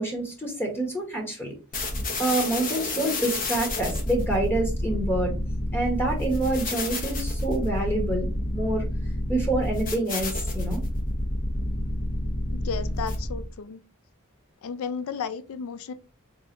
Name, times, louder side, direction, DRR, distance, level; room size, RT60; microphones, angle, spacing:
voice 1, 0.0-1.5 2.2-5.3 5.7-8.8 9.3-10.8, right 2 dB, 10° left, 1.1 m, -27 dB
sound 1, 1.7-13.5, left 1 dB, 40° left, 0.9 m, -29 dB
voice 2, 12.5-13.8 14.6-15.9, left 6 dB, 75° left, 0.4 m, -33 dB
3.6 x 3.2 x 2.6 m
head